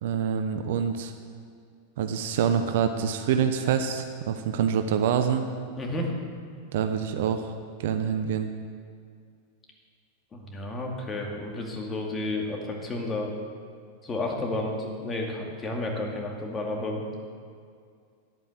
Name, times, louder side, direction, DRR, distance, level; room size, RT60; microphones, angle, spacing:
voice 1, 0.0-1.1 2.0-5.5 6.7-7.5 7.8-8.5, right 7 dB, 55° right, 7 dB, 0.8 m, -26 dB
voice 2, 5.8-6.2 10.3-13.3 14.0-17.2, left 2 dB, 20° left, 0 dB, 2.4 m, -31 dB
11.0 x 8.7 x 7.7 m, 2.2 s
figure-of-eight pair, 90°, 0 cm